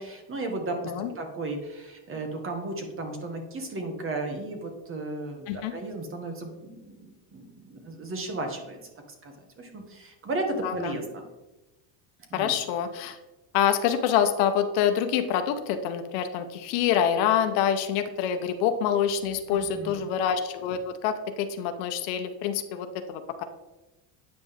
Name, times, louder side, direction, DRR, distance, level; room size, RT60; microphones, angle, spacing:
voice 1, 0.0-8.8 9.2-11.3 12.3-12.6 19.7-19.9, right 2 dB, 25° right, 4 dB, 1.3 m, -34 dB
voice 2, 10.6-11.0 12.3-13.2 13.5-23.4, left 8 dB, 75° left, 8 dB, 0.9 m, -26 dB
8.9 x 5.3 x 3.6 m, 1.1 s
cardioid pair, 145°, 47 cm